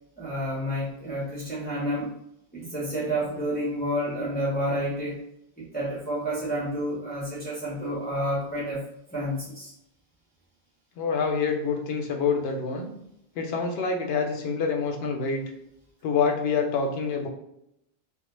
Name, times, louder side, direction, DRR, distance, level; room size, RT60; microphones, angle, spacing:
voice 1, 0.2-2.1 2.5-5.2 5.6-8.8 9.1-9.7, equal, 10° left, -8 dB, 0.6 m, -29 dB
voice 2, 11.0-12.9 13.4-15.4 16.0-17.3, left 5 dB, 75° left, 2 dB, 0.8 m, -26 dB
2.1 x 2.0 x 3.0 m, 0.79 s
omnidirectional pair, 1.1 m